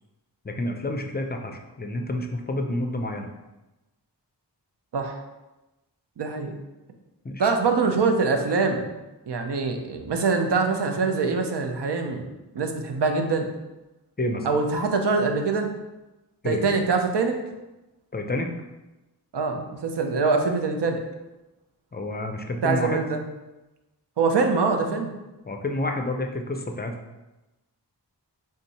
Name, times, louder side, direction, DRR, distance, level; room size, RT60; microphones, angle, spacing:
voice 1, 0.4-3.3 7.2-7.5 14.2-14.5 16.4-16.6 18.1-18.5 21.9-23.0 25.5-27.0, left 1 dB, 25° left, 4 dB, 0.4 m, -29 dB
voice 2, 6.2-6.5 7.4-8.9 9.3-12.3 12.5-13.5 14.4-15.7 16.4-17.3 19.3-21.0 22.6-23.2 24.2-25.1, right 4 dB, 75° right, 4 dB, 0.6 m, -24 dB
3.7 x 2.7 x 4.0 m, 1.0 s
wide cardioid pair, 65°, 42 cm